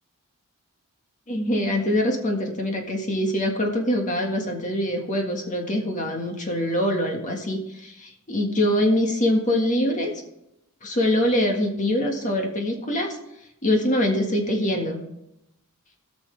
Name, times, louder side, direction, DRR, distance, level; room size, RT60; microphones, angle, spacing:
voice 1, 1.3-10.1 10.8-13.2 13.6-15.0, left 1 dB, 35° left, 2 dB, 1.7 m, -24 dB
18.5 x 6.2 x 3.4 m, 0.84 s
head